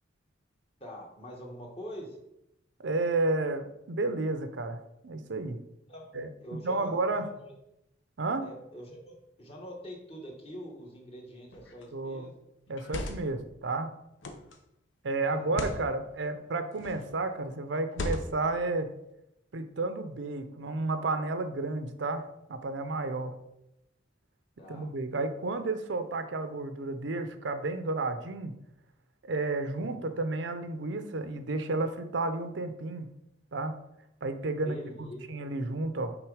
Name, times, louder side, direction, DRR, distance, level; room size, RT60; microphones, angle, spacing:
voice 1, 0.8-2.2 5.9-6.0 6.4-7.5 8.4-12.3 15.3-15.9 24.6-24.8 29.8-30.1 34.6-35.3, equal, 30° left, -1 dB, 1.4 m, -45 dB
voice 2, 2.8-5.6 6.1-7.3 8.2-8.5 11.9-12.3 12.7-13.9 15.0-18.9 19.5-23.3 24.7-28.5 29.2-33.0 33.5-33.7 34.2-36.2, right 2 dB, 70° right, 9 dB, 0.6 m, -32 dB
sound 1, 11.5-11.8 12.7-13.4 14.2-14.6 15.4-15.8 16.7-17.1 17.9-18.5, left 1 dB, 75° left, 0.8 m, -36 dB
6.0 x 4.0 x 4.9 m, 0.83 s
head